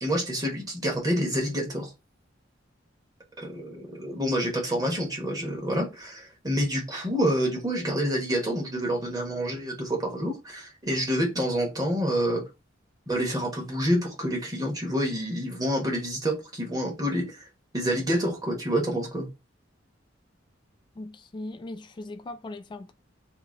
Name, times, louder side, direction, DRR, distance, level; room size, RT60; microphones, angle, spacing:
voice 1, 0.0-1.9 3.4-12.4 13.1-17.4 17.7-19.3, equal, 20° right, 1.1 m, -28 dB
voice 2, 21.0-22.9, left 2 dB, 25° left, 0.3 m, -39 dB
2.9 x 2.7 x 3.8 m
head